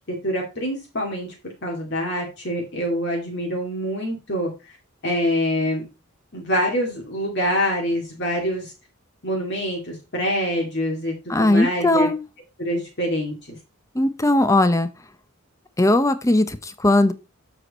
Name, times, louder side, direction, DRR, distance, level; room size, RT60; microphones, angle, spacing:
voice 1, 0.2-1.3 1.6-4.8 5.0-5.9 6.3-8.7 9.2-12.1 12.6-13.6, equal, 55° left, 0 dB, 2.4 m, -25 dB
voice 2, 11.3-12.2 13.9-14.9 15.8-17.1, left 1 dB, 15° left, 12 dB, 0.7 m, -18 dB
7.7 x 6.2 x 4.1 m, 0.28 s
head